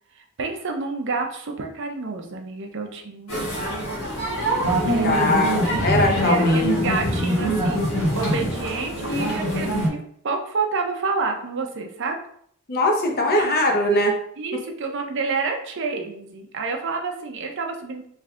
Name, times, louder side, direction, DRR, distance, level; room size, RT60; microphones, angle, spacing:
voice 1, 0.2-3.3 4.9-5.4 6.1-12.2 13.2-13.5 14.4-18.1, right 4 dB, 60° right, 3 dB, 0.6 m, -29 dB
sound 1, 3.3-9.9, right 1 dB, 70° left, 1.4 m, -23 dB
voice 2, 5.0-6.9 12.7-14.2, left 1 dB, 45° left, 1 dB, 0.8 m, -21 dB
3.5 x 3.2 x 3.7 m, 0.66 s
head